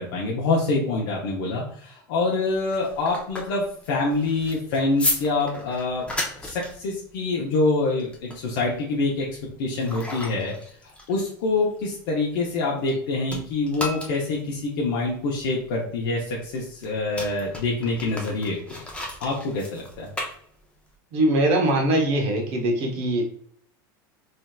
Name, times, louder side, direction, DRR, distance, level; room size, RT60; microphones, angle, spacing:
voice 1, 0.0-6.1 6.4-9.3 9.6-10.5 11.1-18.6 19.2-20.1, left 3 dB, 70° left, -3 dB, 0.7 m, -25 dB
sound 1, 2.5-13.0 13.3-21.0, left 2 dB, 10° left, 0.7 m, -35 dB
voice 2, 21.1-23.2, right 1 dB, 55° right, 2 dB, 1.0 m, -22 dB
3.2 x 2.8 x 2.3 m, 0.63 s
hypercardioid pair, 105°, 12 cm